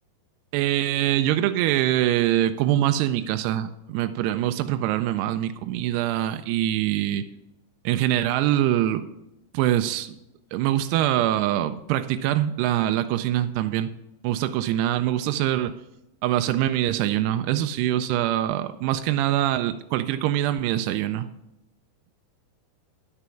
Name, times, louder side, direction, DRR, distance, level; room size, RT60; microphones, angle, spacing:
voice 1, 0.5-7.2 7.9-9.1 9.5-10.2 10.5-13.9 14.2-15.7 16.2-21.3, right 12 dB, 85° right, 9 dB, 2.5 m, -24 dB
11.5 x 6.1 x 5.7 m, 0.88 s
omnidirectional pair, 4.8 m